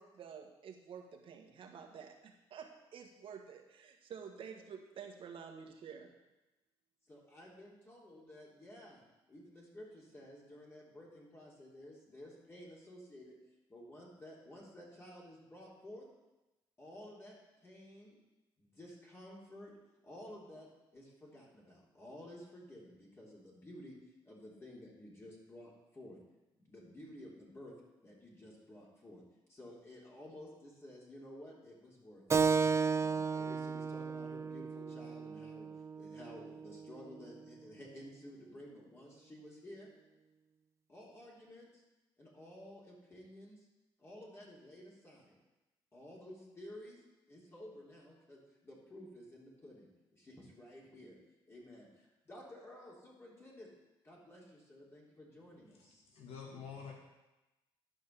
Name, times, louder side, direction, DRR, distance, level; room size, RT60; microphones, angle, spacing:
voice 1, 0.0-6.1, right 7 dB, 60° right, 3 dB, 1.6 m, -50 dB
voice 2, 7.1-13.4 13.7-16.1 16.8-17.4 17.6-18.2 18.6-19.7 20.0-24.0 24.2-26.2 26.6-27.7 28.0-29.2 29.5-32.4 32.9-35.7 35.9-39.9 40.9-41.8 42.2-43.7 44.0-45.4 45.9-47.0 47.3-51.2 51.5-53.7 54.0-56.0, left 1 dB, 25° left, -5 dB, 3.3 m, -53 dB
Keyboard (musical), 32.3-37.4, right 5 dB, 30° right, 0.4 m, -34 dB
voice 3, 56.1-56.9, left 6 dB, 80° left, -1 dB, 2.1 m, -47 dB
11.0 x 5.4 x 6.8 m, 1.0 s
cardioid pair, 95°, 10 cm